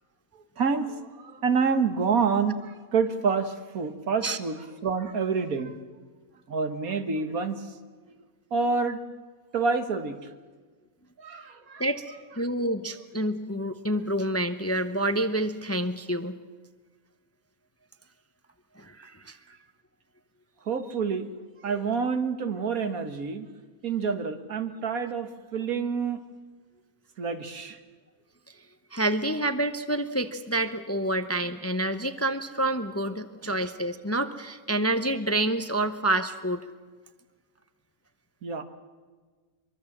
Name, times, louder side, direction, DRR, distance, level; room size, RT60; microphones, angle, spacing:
voice 1, 0.6-5.7 6.5-7.6 8.5-9.0 9.5-10.2 11.2-11.8 20.7-21.3 21.6-23.5 23.8-26.2 27.2-27.8 38.4-38.6, right 5 dB, 80° right, 8 dB, 1.9 m, -27 dB
voice 2, 12.4-16.4 18.8-19.4 28.9-36.6, right 1 dB, 15° left, 9 dB, 0.7 m, -28 dB
24.0 x 23.5 x 7.3 m, 1.4 s
omnidirectional pair, 1.5 m